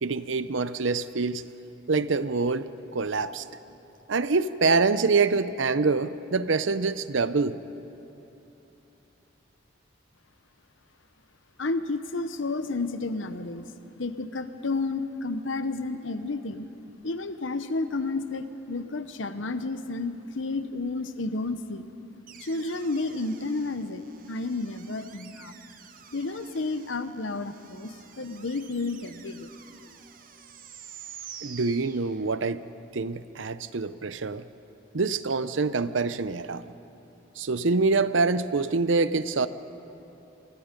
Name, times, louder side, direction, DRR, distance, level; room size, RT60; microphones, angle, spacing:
voice 1, 0.0-1.4 1.9-3.4 4.1-7.6 31.4-32.6 32.9-34.4 34.9-36.7 37.4-39.5, right 4 dB, 75° right, 14 dB, 0.7 m, -25 dB
voice 2, 11.6-13.7 14.0-16.7 17.0-21.9 22.4-25.5 26.1-29.5, left 3 dB, 75° left, 11 dB, 1.0 m, -31 dB
sound 1, 22.3-32.6, right 8 dB, 45° right, 1.2 m, -49 dB
28.5 x 21.0 x 5.3 m, 2.9 s
head